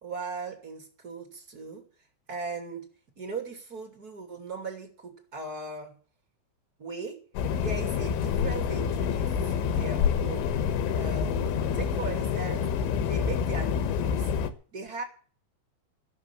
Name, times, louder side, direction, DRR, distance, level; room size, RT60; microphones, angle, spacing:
voice 1, 0.0-1.8 2.3-2.9 3.2-6.0 6.8-7.2 7.6-10.5 11.0-12.7 13.0-14.3 14.7-15.0, right 3 dB, 30° right, 2.1 m, -38 dB
sound 1, 7.4-14.5, left 7 dB, 75° left, 3.5 m, -27 dB
14.5 x 7.2 x 10.0 m
omnidirectional pair, 5.6 m